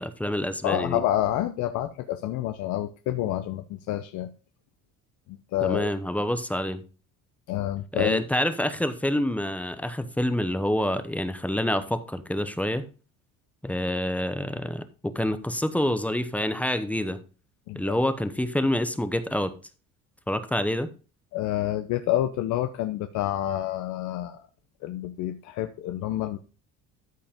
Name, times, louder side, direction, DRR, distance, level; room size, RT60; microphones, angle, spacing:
voice 1, 0.0-1.0 5.6-6.8 7.9-12.8 13.6-17.2 17.7-19.5 20.3-20.9, left 1 dB, 5° left, 10 dB, 0.8 m, -27 dB
voice 2, 0.6-4.3 5.5-5.9 7.5-8.2 17.7-18.0 21.3-24.4 24.8-26.4, left 13 dB, 65° left, 9 dB, 0.8 m, -28 dB
13.0 x 5.4 x 3.6 m, 0.34 s
cardioid pair, 140°, 32 cm